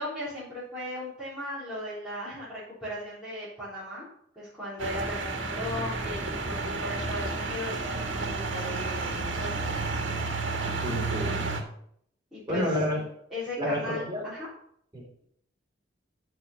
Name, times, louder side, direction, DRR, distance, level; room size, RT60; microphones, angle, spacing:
voice 1, 0.0-4.1 4.4-9.9 12.3-12.8 13.3-14.5, left 1 dB, ahead, -12 dB, 3.7 m, -37 dB
sound 1, 4.8-11.6, right 3 dB, 80° right, 1.7 m, -31 dB
voice 2, 10.8-11.5 12.5-13.0 13.6-14.3 14.9-15.2, equal, 25° right, -2 dB, 3.4 m, -30 dB
13.0 x 4.6 x 5.6 m, 0.68 s
head